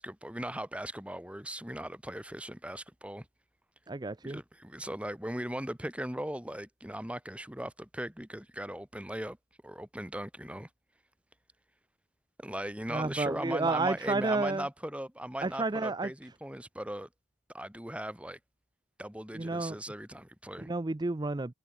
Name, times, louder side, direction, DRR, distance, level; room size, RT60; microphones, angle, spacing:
voice 1, 0.0-3.3 4.2-9.4 9.6-10.7 12.4-17.1 17.5-18.4 19.0-20.7, right 1 dB, 5° right, 3.8 m, -38 dB
voice 2, 3.9-4.4 12.9-14.7 15.4-16.1 19.3-19.8 20.7-21.5, right 3 dB, 20° right, 0.5 m, -31 dB
head